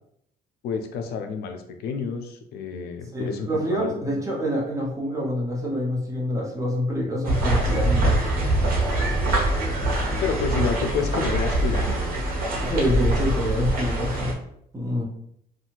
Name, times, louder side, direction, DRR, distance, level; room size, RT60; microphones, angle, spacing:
voice 1, 0.6-4.2 10.2-12.2, left 5 dB, 70° left, 6 dB, 0.4 m, -29 dB
voice 2, 3.1-8.1 12.6-14.3 14.7-15.0, equal, 20° right, -2 dB, 0.9 m, -26 dB
sound 1, 7.2-14.3, right 1 dB, 60° right, 0.9 m, -24 dB
2.7 x 2.4 x 2.9 m, 0.71 s
cardioid pair, 110°, 17 cm